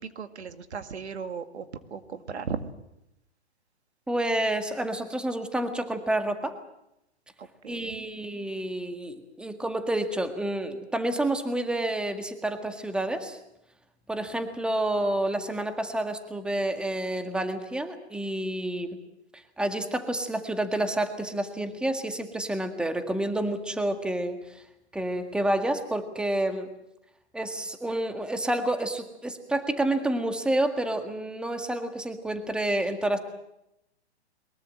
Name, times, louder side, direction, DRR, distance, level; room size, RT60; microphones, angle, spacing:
voice 1, 0.2-1.7 1.9-2.7 7.4-8.1, right 6 dB, 75° right, 8 dB, 2.1 m, -36 dB
voice 2, 4.1-6.5 7.7-13.4 14.1-19.0 19.3-24.6 24.9-26.7 27.3-33.2, right 1 dB, 5° right, 7 dB, 1.8 m, -29 dB
23.0 x 21.5 x 7.6 m, 0.84 s
hypercardioid pair, 125°, 33 cm